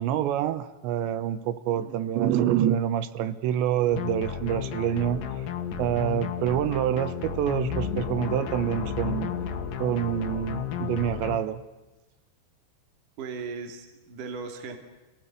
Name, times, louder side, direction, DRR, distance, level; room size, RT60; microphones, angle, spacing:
voice 1, 0.0-5.2 5.8-9.3 9.8-11.6, right 10 dB, 80° right, 13 dB, 3.3 m, -26 dB
voice 2, 1.7-2.1 13.2-14.8, right 5 dB, 50° right, 5 dB, 3.9 m, -38 dB
sound 1, 3.9-11.4, left 8 dB, 55° left, 3.0 m, -32 dB
28.5 x 18.0 x 9.4 m, 1.1 s
omnidirectional pair, 5.1 m